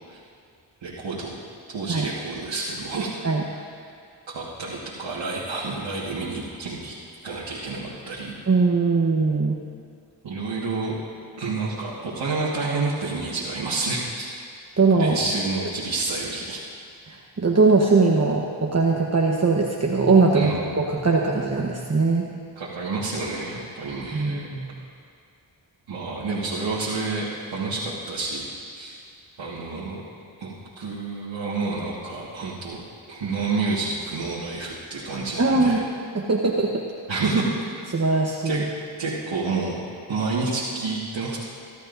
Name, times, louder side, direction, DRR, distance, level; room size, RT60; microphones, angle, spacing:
voice 1, 0.8-1.4 1.7-3.1 3.5-3.6 4.3-6.9 7.2-8.4 10.2-11.0 11.4-14.3 14.9-16.6 20.3-20.9 22.6-24.5 25.9-28.5 28.7-29.0 29.4-30.0 30.4-32.8 33.1-35.8 37.1-37.7 38.4-38.6 39.0-39.7 40.1-41.4, right 3 dB, 85° right, -9 dB, 1.8 m, -29 dB
voice 2, 8.5-9.6 14.8-15.2 17.4-22.3 24.1-24.6 35.4-35.8 36.1-36.8 37.9-38.6, right 3 dB, 35° right, -1 dB, 1.1 m, -20 dB
22.0 x 11.5 x 2.6 m, 2.4 s
cardioid pair, 50°, 44 cm